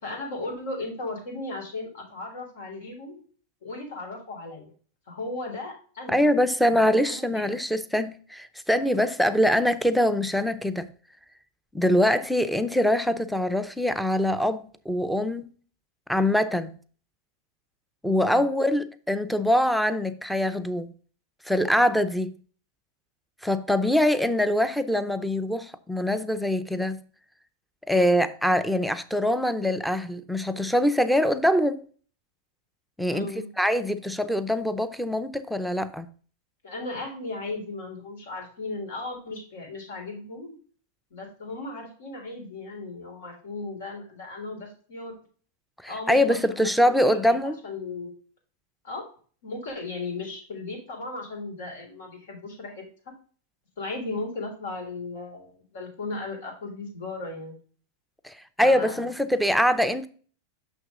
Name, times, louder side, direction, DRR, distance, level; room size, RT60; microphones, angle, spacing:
voice 1, 0.0-3.2 3.6-4.7 5.1-6.2 6.7-7.5 18.1-18.4 33.1-33.5 36.6-40.5 41.1-45.1 45.9-47.3 47.6-48.1 48.8-49.1 49.4-52.8 53.8-57.5 58.6-59.1, left 2 dB, 80° left, 3.4 m, -36 dB
voice 2, 6.1-10.9 11.7-15.5 16.1-16.7 18.0-20.9 21.5-22.3 23.4-27.0 27.9-31.8 33.0-36.1 45.8-47.6 58.2-60.1, equal, ahead, 0.5 m, -24 dB
6.2 x 6.1 x 3.6 m
supercardioid pair, 145°, 0 cm